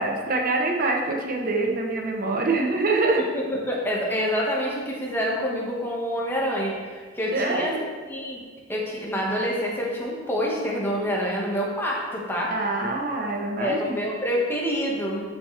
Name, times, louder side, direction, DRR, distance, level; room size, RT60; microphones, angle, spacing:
voice 1, 0.0-3.2 7.3-7.8 12.5-14.0, right 3 dB, 50° right, 0 dB, 1.0 m, -25 dB
voice 2, 3.3-7.8 8.1-8.4 8.7-12.5 13.6-15.2, equal, 10° left, -3 dB, 1.6 m, -27 dB
13.0 x 6.1 x 3.4 m, 1.5 s
head